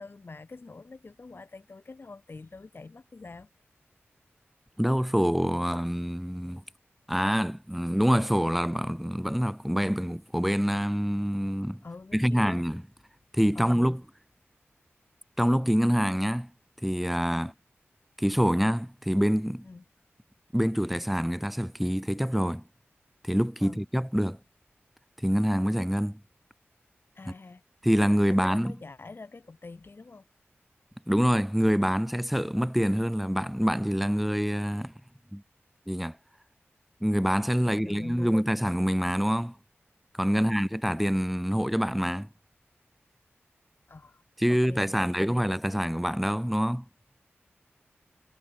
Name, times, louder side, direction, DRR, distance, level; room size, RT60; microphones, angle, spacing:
voice 1, 0.0-3.5 11.8-12.6 13.6-13.9 19.6-19.8 23.6-23.8 27.2-27.6 28.3-30.3 37.6-38.4 40.3-40.6 43.9-44.2 44.5-45.4, left 3 dB, 55° left, 3.5 m, -45 dB
voice 2, 4.8-6.6 7.1-11.8 12.1-12.8 13.3-14.0 15.4-16.5 16.8-17.5 18.2-19.6 20.5-22.6 23.2-24.4 25.2-26.2 27.8-28.7 31.1-34.9 35.3-35.4 35.9-36.2 37.0-39.6 40.1-42.3 44.4-46.9, equal, ahead, 0.8 m, -26 dB
wide cardioid pair, 60°, 5 cm